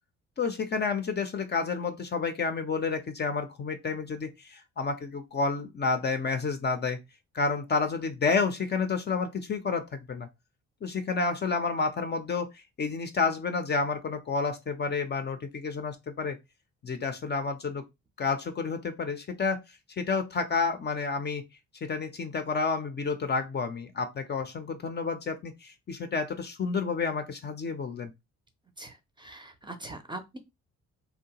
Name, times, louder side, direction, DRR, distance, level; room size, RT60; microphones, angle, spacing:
voice 1, 0.4-7.0 7.3-10.3 10.8-16.4 16.8-17.8 18.2-19.6 20.0-21.4 21.8-28.1, left 4 dB, 35° left, 0.5 m, -30 dB
voice 2, 28.8-30.4, right 2 dB, 15° right, 0.5 m, -42 dB
2.7 x 2.2 x 2.8 m
cardioid pair, 90°, 30 cm